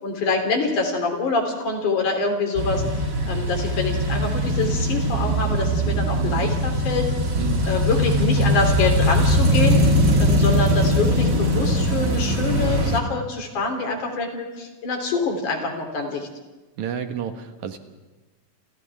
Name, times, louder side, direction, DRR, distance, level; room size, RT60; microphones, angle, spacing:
voice 1, 0.0-7.1 7.7-9.8 10.2-16.3, left 3 dB, 90° left, 2 dB, 5.0 m, -25 dB
sound 1, 2.6-13.0, equal, 30° right, 2.4 m, -21 dB
voice 2, 7.4-7.8 16.8-17.8, right 8 dB, 75° right, 7 dB, 2.9 m, -30 dB
29.0 x 29.0 x 3.6 m, 1.2 s
omnidirectional pair, 3.4 m